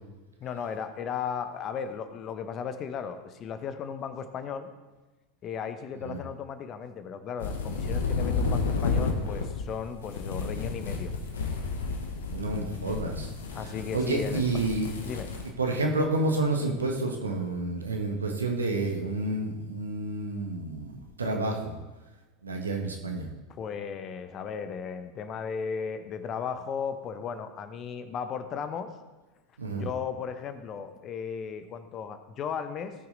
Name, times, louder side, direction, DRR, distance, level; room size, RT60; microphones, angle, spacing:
voice 1, 0.4-4.7 5.4-11.1 13.5-14.6 15.0-15.3 23.5-28.9 29.7-32.9, left 6 dB, 40° left, 9 dB, 1.0 m, -35 dB
sound 1, 7.4-15.5, left 4 dB, 80° left, 1.4 m, -31 dB
voice 2, 12.3-13.3 13.9-14.9 15.6-21.7 22.4-23.3 29.6-29.9, right 2 dB, 85° right, 2 dB, 1.5 m, -29 dB
16.5 x 6.0 x 4.0 m, 1.2 s
hypercardioid pair, 85°, 0 cm